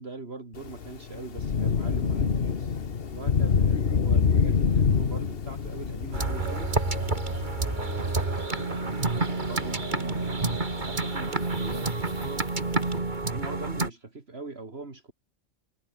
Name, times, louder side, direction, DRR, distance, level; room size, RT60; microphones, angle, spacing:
voice 1, 0.0-2.8 3.1-6.7 7.6-12.5 13.2-15.1, right 3 dB, 55° right, 2.9 m, -41 dB
Thunder / Rain, 0.5-13.0, left 6 dB, 50° left, 1.4 m, -28 dB
sound 1, 6.1-13.9, right 3 dB, 40° right, 2.5 m, -29 dB
omnidirectional pair, 1.3 m